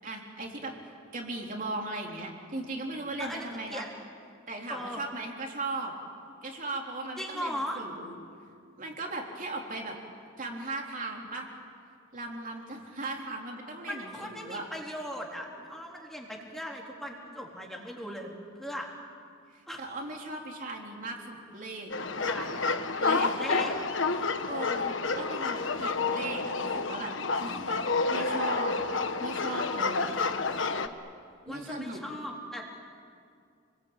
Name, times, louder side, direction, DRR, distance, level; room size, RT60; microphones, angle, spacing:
voice 1, 0.0-3.9 4.5-5.9 6.4-8.1 8.8-10.0 10.4-11.5 12.1-14.7 19.5-21.9 22.2-22.3 22.6-22.7 23.0-23.4 24.1-27.8 28.1-28.9 29.2-30.2 31.5-32.0, right 2 dB, 45° right, 0 dB, 3.9 m, -38 dB
voice 2, 3.2-3.9 4.7-5.0 7.2-7.8 13.9-18.3 18.6-18.9 19.7-19.8 22.3-22.5 23.4-23.8 31.5-32.6, equal, ahead, -1 dB, 3.7 m, -38 dB
sound 1, 21.9-30.9, left 4 dB, 65° left, 1.3 m, -29 dB
29.5 x 21.5 x 9.1 m, 2.3 s
head